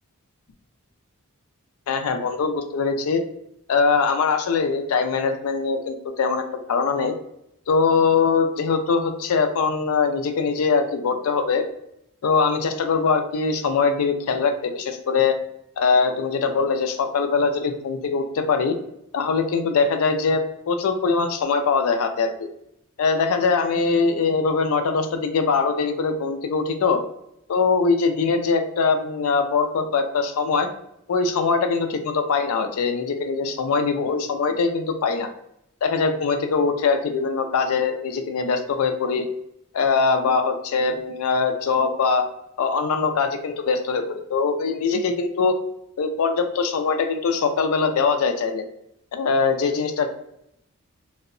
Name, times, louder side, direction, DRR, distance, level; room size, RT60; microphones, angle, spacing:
voice 1, 1.9-3.2 3.7-7.1 7.7-11.6 12.2-15.4 15.8-18.7 19.1-22.3 23.0-27.0 27.5-30.7 31.1-35.3 35.8-39.3 39.7-42.3 42.6-45.5 46.0-48.6 49.1-50.1, left 5 dB, 75° left, 6 dB, 0.4 m, -22 dB
2.7 x 2.1 x 2.5 m, 0.79 s
head